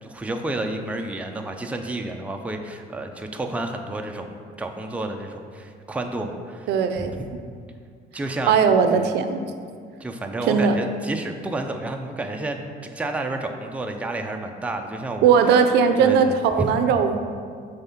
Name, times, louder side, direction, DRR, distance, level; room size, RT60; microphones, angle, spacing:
voice 1, 0.0-4.3 4.6-6.7 7.0-7.1 8.1-8.6 8.9-9.1 10.0-15.3 16.0-16.7, right 2 dB, 10° right, 3 dB, 0.4 m, -30 dB
voice 2, 6.7-7.1 8.5-9.4 10.4-10.8 15.2-17.2, right 6 dB, 80° right, 8 dB, 0.5 m, -18 dB
5.3 x 3.5 x 5.7 m, 2.1 s
cardioid pair, 110°, 17 cm